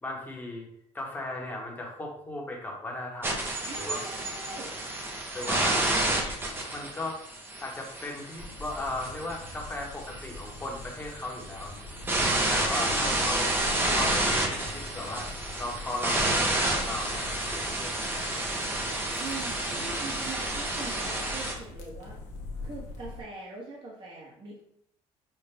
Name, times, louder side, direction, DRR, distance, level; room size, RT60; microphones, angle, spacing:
voice 1, 0.0-0.7 0.9-3.5 3.8-4.0 5.3-6.3 6.7-7.2 7.6-11.9 12.5-13.5 13.9-15.3 15.6-18.4 18.8-19.1, left 2 dB, 15° left, -1 dB, 1.2 m, -37 dB
sound 1, 3.2-21.5, right 1 dB, 20° right, 0.9 m, -30 dB
voice 2, 3.6-4.7 5.5-5.6 12.6-13.2 19.2-22.2 22.6-24.6, right 3 dB, 40° right, -4 dB, 1.4 m, -42 dB
sound 2, 8.4-23.2, left 2 dB, 85° left, 1.0 m, -43 dB
5.9 x 2.4 x 3.4 m, 0.72 s
cardioid pair, 115°, 12 cm